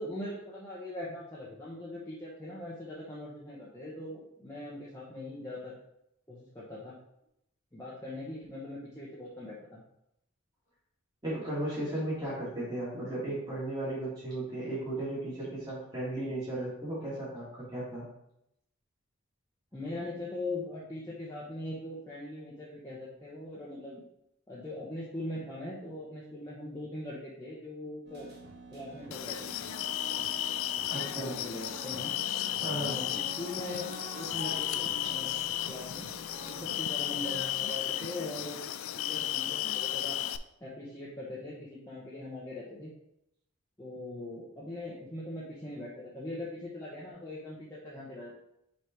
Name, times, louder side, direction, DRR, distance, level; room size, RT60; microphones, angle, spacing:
voice 1, 0.0-5.7 6.3-7.0 7.7-9.8 19.7-24.0 24.5-28.3 28.7-29.5 31.2-32.1 32.6-35.4 35.7-36.1 36.4-38.6 39.0-40.2 40.6-42.9 43.8-48.3, left 1 dB, 15° left, -8 dB, 0.9 m, -41 dB
voice 2, 11.2-18.1 30.9-31.4 32.6-33.0, right 1 dB, 20° right, -9 dB, 2.3 m, -35 dB
sound 1, 28.1-37.4, right 1 dB, 50° right, 1.3 m, -46 dB
sound 2, 29.1-40.4, left 12 dB, 75° left, 0.3 m, -34 dB
5.0 x 4.1 x 4.5 m, 0.79 s
head